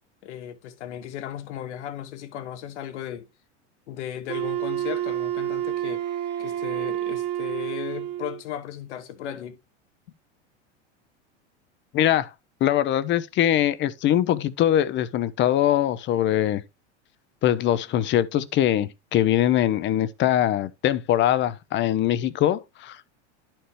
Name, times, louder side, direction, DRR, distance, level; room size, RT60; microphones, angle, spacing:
voice 1, 0.2-3.3 3.9-6.0 6.4-9.6, left 10 dB, 70° left, 1.3 m, -36 dB
Wind instrument woodwind instrument, 4.3-8.4, right 12 dB, 30° right, 1.3 m, -29 dB
voice 2, 11.9-12.3 12.6-16.6 17.4-23.0, left 11 dB, 35° left, 0.5 m, -22 dB
11.0 x 4.4 x 3.0 m
hypercardioid pair, 95°, 35 cm